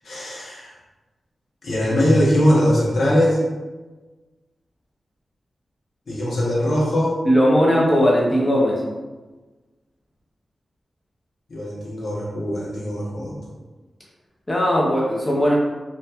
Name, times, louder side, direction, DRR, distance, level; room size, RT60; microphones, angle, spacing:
voice 1, 0.0-0.7 1.6-3.4 6.1-7.2 11.5-13.4, equal, 70° left, -5 dB, 0.7 m, -21 dB
voice 2, 7.3-8.8 14.5-15.5, equal, 25° left, -3 dB, 0.4 m, -18 dB
2.8 x 2.1 x 2.2 m, 1.2 s
wide cardioid pair, 105°, 0 cm